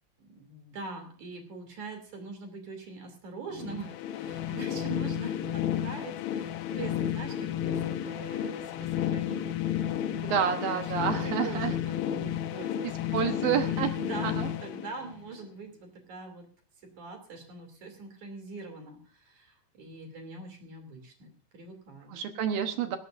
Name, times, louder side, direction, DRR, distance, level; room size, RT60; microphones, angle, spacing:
voice 1, 0.2-9.5 9.8-16.5 16.8-22.1, right 3 dB, 45° right, 4 dB, 3.9 m, -43 dB
sound 1, 3.5-15.4, left 10 dB, 85° left, 2.0 m, -32 dB
voice 2, 10.2-11.7 13.1-14.0 14.2-14.5 22.1-23.0, right 8 dB, 70° right, 6 dB, 2.4 m, -29 dB
18.5 x 17.5 x 2.6 m, 0.41 s
omnidirectional pair, 5.1 m